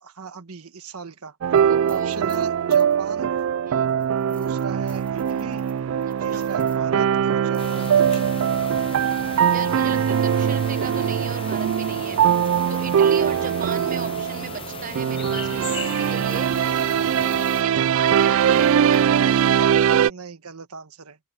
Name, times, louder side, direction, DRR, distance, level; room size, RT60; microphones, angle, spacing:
voice 1, 0.0-3.3 4.4-5.6 6.2-8.8 13.4-13.7 20.1-21.2, right 4 dB, 90° right, 1.4 m, -38 dB
sound 1, 1.4-20.1, right 8 dB, 70° right, 0.3 m, -21 dB
sound 2, 1.5-3.0 3.4-3.5 3.8-6.8 7.4-8.6 8.9-13.2 13.6-14.2 14.6-14.9 15.2-17.6 17.9-19.0 19.3-19.5, left 2 dB, 5° left, 3.6 m, -52 dB
voice 2, 1.6-2.2 3.6-3.9 6.1-6.5 9.4-12.2 12.7-16.7 17.0-19.2, right 5 dB, 35° right, 1.2 m, -37 dB
sound 3, 7.6-17.6, left 5 dB, 25° left, 0.6 m, -38 dB
open air
head